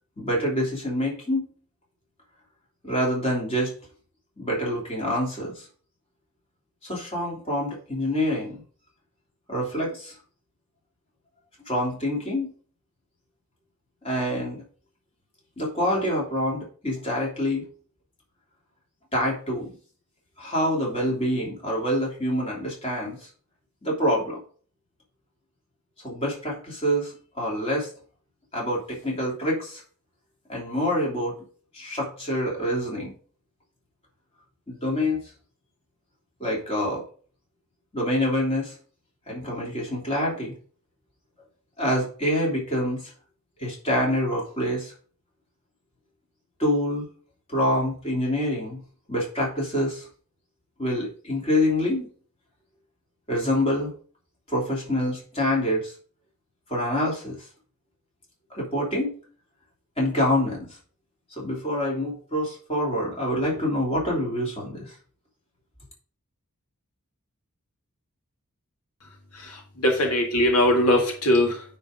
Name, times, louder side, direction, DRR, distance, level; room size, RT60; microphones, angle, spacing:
voice 1, 0.2-1.4 2.8-3.7 4.4-5.6 6.8-8.6 9.5-10.1 11.6-12.5 14.0-14.6 15.6-17.6 19.1-19.7 20.4-23.2 23.8-24.4 26.0-27.9 28.5-29.8 30.5-31.3 31.7-33.1 34.7-35.2 36.4-37.0 37.9-38.7 39.3-40.5 41.8-43.0 43.6-44.9 46.6-47.1 47.5-48.8 49.1-50.1 50.8-52.1 53.3-53.9 54.5-55.9 56.7-57.4 58.5-59.1 60.0-60.7 61.4-64.9, left 1 dB, 25° left, -4 dB, 3.2 m, -26 dB
voice 2, 69.4-71.6, left 1 dB, 90° left, 2 dB, 1.9 m, -21 dB
9.4 x 4.0 x 5.1 m, 0.43 s
head